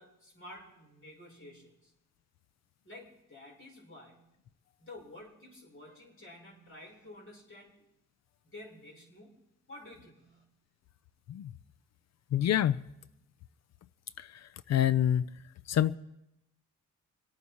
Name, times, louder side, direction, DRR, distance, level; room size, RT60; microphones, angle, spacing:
voice 1, 0.0-1.9 2.8-4.2 4.8-7.8 8.4-9.4 9.7-10.4, left 1 dB, 40° left, 5.2 m, -51 dB
voice 2, 12.3-12.8 14.2-14.3 14.7-15.3 15.7-16.0, left 10 dB, 60° left, 0.5 m, -26 dB
26.5 x 9.2 x 4.3 m
cardioid pair, 90°, 31 cm